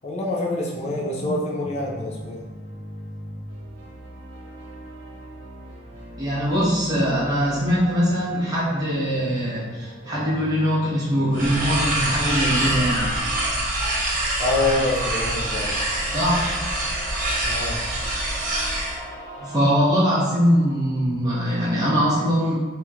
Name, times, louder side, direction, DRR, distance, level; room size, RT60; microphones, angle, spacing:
voice 1, 0.0-2.4 14.4-15.7 17.4-17.8, left 2 dB, 35° left, -4 dB, 0.5 m, -26 dB
sound 1, 1.6-13.5, equal, 85° right, 1.0 m, -40 dB
voice 2, 6.2-13.1 16.1-16.6 19.4-22.5, equal, 20° right, -8 dB, 0.9 m, -22 dB
sound 2, 11.3-19.0, right 1 dB, 45° right, 0.6 m, -25 dB
sound 3, 14.5-19.6, equal, 5° left, 1.1 m, -39 dB
3.0 x 2.9 x 2.4 m, 1.3 s
head